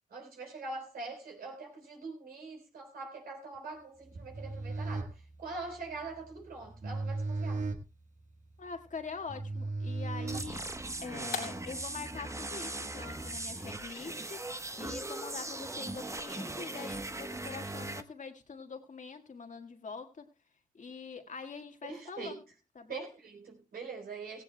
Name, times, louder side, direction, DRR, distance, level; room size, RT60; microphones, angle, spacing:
voice 1, 0.1-7.6 21.8-22.4 22.9-24.4, right 3 dB, 85° right, 3.8 m, -43 dB
sound 1, 4.1-11.0, right 3 dB, 55° right, 1.6 m, -38 dB
voice 2, 8.6-10.7 11.0-20.3 20.7-22.4 22.8-23.1, left 5 dB, 55° left, 1.7 m, -44 dB
sound 2, 9.9-16.2, left 6 dB, 85° left, 2.7 m, -49 dB
sound 3, 10.3-18.0, right 2 dB, 20° right, 1.0 m, -39 dB
16.5 x 16.0 x 2.2 m
cardioid pair, 55°, 15 cm